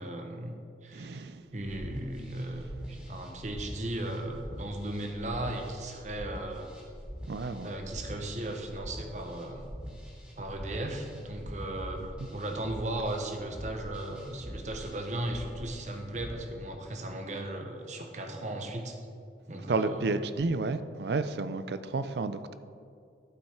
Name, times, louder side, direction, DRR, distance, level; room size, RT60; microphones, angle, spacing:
voice 1, 0.0-1.2 1.5-6.7 7.6-9.6 10.4-12.0 12.3-19.0 19.5-20.2, right 1 dB, 40° right, 3 dB, 1.0 m, -36 dB
voice 2, 0.9-1.4 7.3-7.7 19.7-22.5, right 3 dB, 70° right, 12 dB, 0.4 m, -31 dB
sound 1, 1.6-16.3, equal, 5° right, 2.1 m, -44 dB
12.0 x 5.6 x 4.4 m, 2.4 s
head